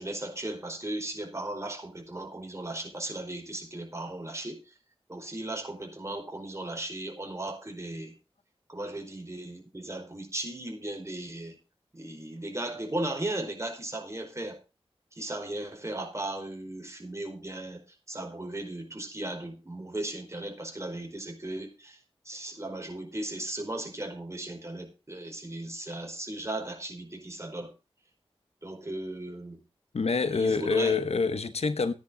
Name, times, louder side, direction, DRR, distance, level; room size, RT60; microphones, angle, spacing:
voice 1, 0.0-4.8 5.1-8.2 8.7-11.6 11.9-14.6 15.1-17.8 18.1-22.0 22.2-27.7 28.6-29.6 30.3-31.0, right 1 dB, 25° right, 4.8 m, -36 dB
voice 2, 29.9-31.9, left 4 dB, 85° left, 1.1 m, -26 dB
14.5 x 10.0 x 3.8 m
wide cardioid pair, 55°, 10 cm